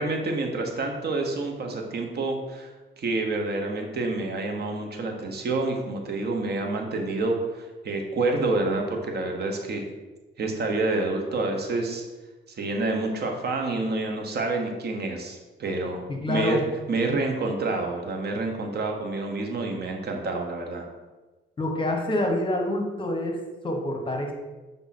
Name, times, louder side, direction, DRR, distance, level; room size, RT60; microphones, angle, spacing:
voice 1, 0.0-2.7 3.0-9.8 10.4-12.0 12.6-16.6 16.9-20.9, right 2 dB, 55° right, 3 dB, 1.1 m, -28 dB
voice 2, 16.1-16.6 21.6-24.3, left 1 dB, 25° left, 2 dB, 1.1 m, -27 dB
6.9 x 3.6 x 4.2 m, 1.2 s
cardioid pair, 90°, 20 cm